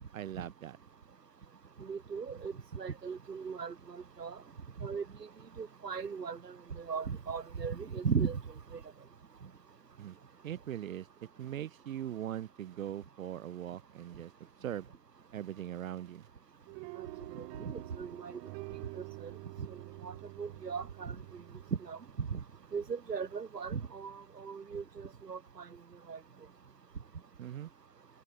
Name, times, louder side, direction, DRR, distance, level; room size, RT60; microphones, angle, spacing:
voice 1, 0.1-0.8 10.0-10.2 10.4-11.1 11.4-14.3 14.6-14.9 15.3-16.3 27.4-27.7, right 11 dB, 55° right, 4.3 m, -40 dB
voice 2, 1.8-4.4 4.8-5.1 5.6-8.4 8.7-8.8 17.0-17.1 17.3-18.4 19.0-19.3 19.6-19.7 20.0-21.4 21.8-22.4 22.7-25.7 26.1-26.2, right 6 dB, 80° right, 3.6 m, -38 dB
sound 1, 16.7-22.9, right 40 dB or more, 35° right, 7.5 m, -48 dB
figure-of-eight pair, 120°, 48 cm